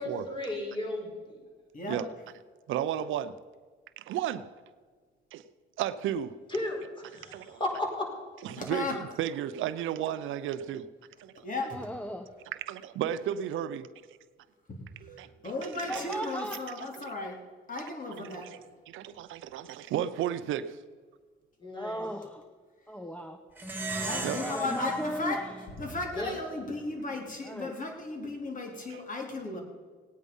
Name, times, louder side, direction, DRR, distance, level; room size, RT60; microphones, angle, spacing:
voice 1, 0.0-1.4 6.5-8.0 15.9-16.1 21.6-22.0 24.0-24.4 26.1-26.3, left 1 dB, 25° left, 0 dB, 4.8 m, -35 dB
voice 2, 2.7-3.4 4.0-4.5 5.3-5.4 5.8-6.4 7.3-7.6 8.4-10.9 11.2-11.5 12.5-13.9 15.0-16.1 16.9-17.1 18.2-18.6 18.9-20.8 24.2-24.4 28.9-29.0, right 10 dB, 85° right, 13 dB, 0.7 m, -34 dB
voice 3, 8.6-9.0 11.4-11.8 14.7-14.8 15.4-17.4 17.7-18.5 24.0-25.4 25.8-29.6, left 3 dB, 40° left, 2 dB, 3.5 m, -35 dB
voice 4, 11.6-12.3 15.9-16.7 21.8-22.4 22.9-23.4 24.4-25.5 27.4-27.8, equal, 5° left, 5 dB, 1.0 m, -37 dB
Plucked string instrument, 23.6-26.4, right 2 dB, 10° right, 2.2 m, -37 dB
18.0 x 9.3 x 5.4 m, 1.5 s
cardioid pair, 90°, 20 cm